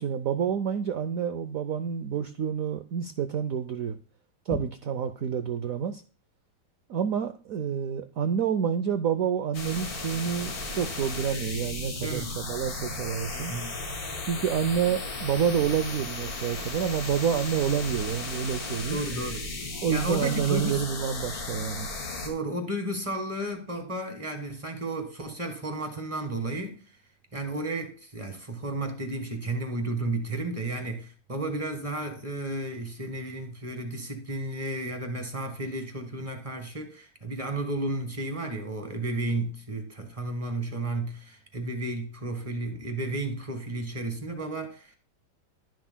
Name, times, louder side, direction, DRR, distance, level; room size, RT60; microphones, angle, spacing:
voice 1, 0.0-4.0 4.4-6.0 6.9-13.5 14.3-19.0 19.8-21.9, right 8 dB, 70° right, 0.8 m, -28 dB
sound 1, 9.5-22.3, left 3 dB, 85° left, 2.9 m, -35 dB
voice 2, 13.3-13.7 18.9-19.5 19.9-20.9 22.2-26.8 27.3-45.0, right 2 dB, 20° right, 1.4 m, -33 dB
12.0 x 10.5 x 2.2 m
omnidirectional pair, 2.2 m